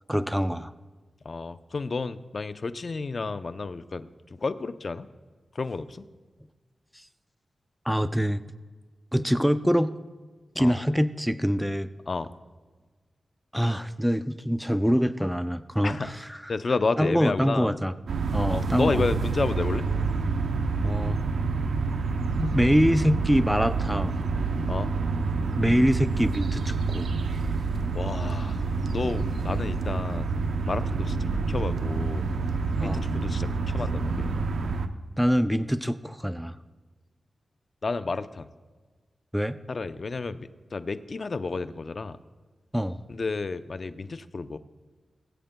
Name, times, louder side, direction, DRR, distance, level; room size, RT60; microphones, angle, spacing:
voice 1, 0.1-0.7 6.9-7.1 7.9-8.4 9.1-9.9 10.6-11.9 13.5-16.4 17.0-17.9 18.3-19.0 20.8-21.2 22.4-24.2 25.6-27.1 32.8-33.0 35.2-36.5 39.3-39.6 42.7-43.0, equal, ahead, 12 dB, 0.4 m, -24 dB
voice 2, 1.2-5.1 5.5-6.1 10.6-10.7 12.1-12.3 15.8-16.1 16.5-17.8 18.5-19.9 24.7-25.0 27.9-28.6 28.9-30.3 30.7-32.3 32.8-34.4 35.5-35.6 37.8-38.5 39.7-42.2 43.1-44.6, left 3 dB, 55° left, 12 dB, 0.5 m, -31 dB
sound 1, 18.1-34.9, right 4 dB, 85° right, 0.6 m, -28 dB
20.0 x 8.7 x 2.2 m, 1.4 s
cardioid pair, 60°, 0 cm